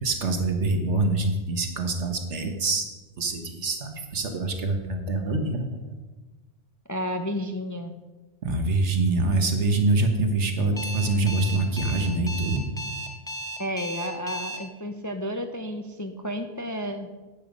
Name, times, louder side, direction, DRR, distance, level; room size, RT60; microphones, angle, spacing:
voice 1, 0.0-2.9 3.2-5.8 8.4-12.6, right 2 dB, 75° right, 5 dB, 1.6 m, -25 dB
voice 2, 6.9-7.9 13.6-17.1, equal, 20° left, 6 dB, 0.5 m, -31 dB
Alarm, 10.8-14.6, right 1 dB, 5° left, 0.9 m, -34 dB
10.0 x 8.8 x 5.2 m, 1.2 s
omnidirectional pair, 1.2 m